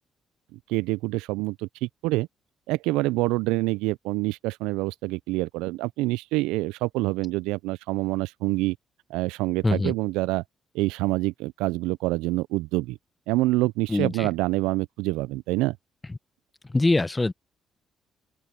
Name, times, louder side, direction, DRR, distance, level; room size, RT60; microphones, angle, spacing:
voice 1, 0.5-2.3 2.7-8.8 9.1-10.4 10.7-13.0 13.3-15.8, right 20 dB, 85° right, 0.3 m, -26 dB
voice 2, 9.6-9.9 13.9-14.3 16.1-16.2 16.7-17.3, left 2 dB, 20° left, 1.1 m, -23 dB
open air
supercardioid pair, 60°, 0 cm